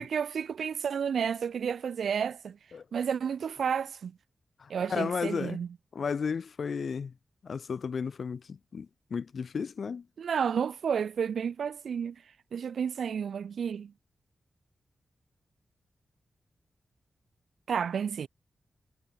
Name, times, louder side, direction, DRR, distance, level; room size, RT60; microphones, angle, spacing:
voice 1, 0.0-2.6 2.9-4.2 4.7-5.7 10.2-12.2 12.5-13.9 17.7-18.3, right 7 dB, 80° right, 0.7 m, -31 dB
voice 2, 4.6-5.6 5.9-7.1 7.4-10.1, left 6 dB, 70° left, 0.8 m, -33 dB
cardioid pair, 50°, 0 cm